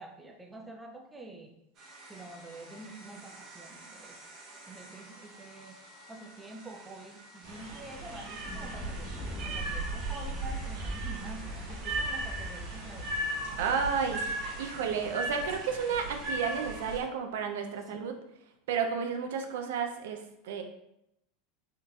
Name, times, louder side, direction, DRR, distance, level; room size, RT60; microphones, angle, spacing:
voice 1, 0.0-1.6 2.1-4.2 4.7-5.8 6.1-9.1 9.4-13.1 17.9-18.0, right 2 dB, 10° right, 3 dB, 0.4 m, -47 dB
sound 1, 1.7-14.8, right 2 dB, 40° right, 0.9 m, -52 dB
sound 2, 7.4-17.0, right 2 dB, 65° right, 1.3 m, -37 dB
Thunder, 8.2-14.9, left 1 dB, 40° left, 0.7 m, -42 dB
voice 2, 13.6-18.1 18.7-20.2 20.4-20.6, right 6 dB, 80° right, 5 dB, 0.4 m, -32 dB
3.7 x 2.6 x 2.3 m, 0.82 s
supercardioid pair, 115°, 0 cm